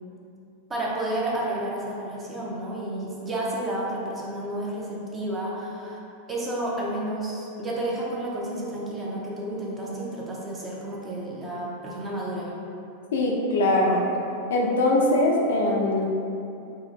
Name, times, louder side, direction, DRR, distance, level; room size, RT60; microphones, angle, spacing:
voice 1, 0.7-6.0 6.3-12.5, right 1 dB, 15° right, -5 dB, 0.8 m, -31 dB
voice 2, 13.1-14.0 14.5-16.1, left 1 dB, 90° left, -2 dB, 0.8 m, -22 dB
3.8 x 3.1 x 4.0 m, 2.7 s
supercardioid pair, 155°, 0 cm